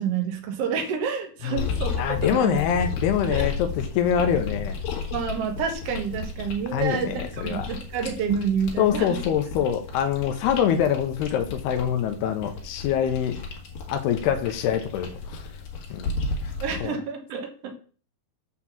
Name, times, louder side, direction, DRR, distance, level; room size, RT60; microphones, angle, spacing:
voice 1, 0.0-1.9 2.2-2.6 3.3-3.5 5.1-9.2 16.6-17.7, right 6 dB, 80° right, 4 dB, 1.4 m, -28 dB
voice 2, 1.4-4.8 6.7-7.7 8.8-13.4 13.9-15.5 15.9-16.1 16.8-17.0, left 9 dB, 85° left, 7 dB, 2.9 m, -25 dB
sound 1, 1.6-16.8, left 4 dB, 60° left, 3.2 m, -33 dB
7.3 x 4.7 x 7.1 m, 0.42 s
omnidirectional pair, 4.6 m